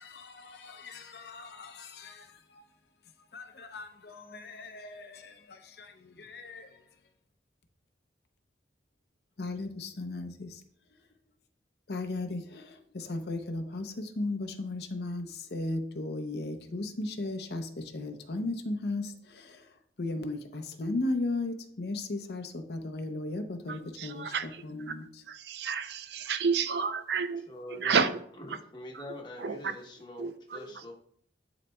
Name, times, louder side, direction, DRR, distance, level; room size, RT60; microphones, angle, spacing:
voice 1, 0.0-2.6 3.3-6.9 9.4-10.6 10.9-11.0 11.9-25.2, left 2 dB, 70° left, 0.7 m, -36 dB
voice 2, 24.0-24.5 25.3-27.4 27.7-28.2 28.9-29.0 29.4-29.7 30.2-30.9, right 6 dB, 75° right, 0.5 m, -30 dB
voice 3, 27.5-28.1 28.4-30.9, left 1 dB, 25° left, 1.0 m, -44 dB
10.5 x 4.0 x 2.2 m
head